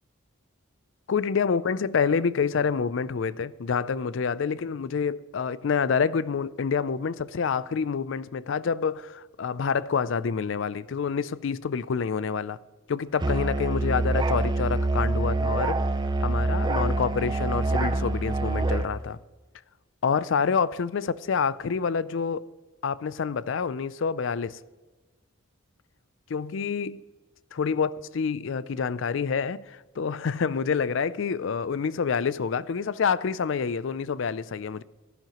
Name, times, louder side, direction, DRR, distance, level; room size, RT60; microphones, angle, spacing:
voice 1, 1.1-12.6 12.9-15.9 16.2-19.2 20.0-22.4 22.8-24.6 26.3-27.0 27.5-34.8, left 6 dB, 65° left, 0.4 m, -27 dB
Musical instrument, 13.2-18.9, right 2 dB, 20° right, 0.4 m, -26 dB
16.0 x 10.5 x 3.0 m
head